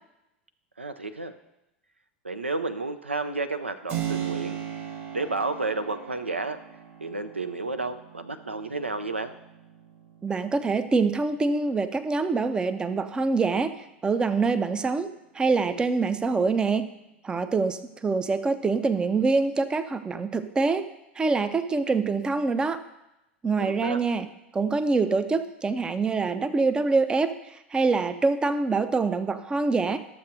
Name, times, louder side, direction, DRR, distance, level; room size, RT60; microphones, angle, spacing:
voice 1, 0.8-1.3 2.2-4.6 5.1-6.6 7.0-9.3 23.6-24.0, right 3 dB, 85° right, 9 dB, 0.4 m, -31 dB
Keyboard (musical), 3.9-12.4, right 10 dB, 40° right, 1.5 m, -38 dB
voice 2, 10.2-13.7 14.0-15.1 15.3-16.9 17.2-20.9 21.2-22.8 23.4-24.3 24.5-30.0, right 4 dB, 15° right, 11 dB, 0.5 m, -25 dB
12.5 x 7.2 x 2.6 m, 0.91 s
figure-of-eight pair, 85°, 6 cm